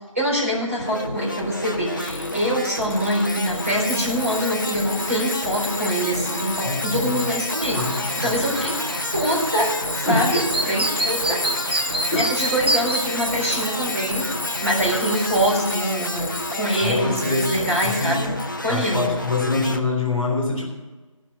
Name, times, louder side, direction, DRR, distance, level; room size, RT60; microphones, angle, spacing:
voice 1, 0.1-7.8 8.2-8.8 9.1-9.7 10.0-11.4 12.1-14.2 14.6-18.3 18.6-19.1, equal, 25° right, -6 dB, 4.3 m, -24 dB
sound 1, 0.8-19.8, left 1 dB, 35° left, 0.7 m, -31 dB
Tools, 2.0-18.5, left 2 dB, 65° left, 1.0 m, -31 dB
voice 2, 6.6-7.2 7.7-8.3 10.0-10.3 12.1-12.2 16.8-18.3 18.7-20.6, left 3 dB, ahead, -18 dB, 1.1 m, -25 dB
Chirp tweet, 7.6-15.6, right 2 dB, 50° right, 0.8 m, -30 dB
16.5 x 6.2 x 8.1 m, 1.2 s
figure-of-eight pair, 175°, 17 cm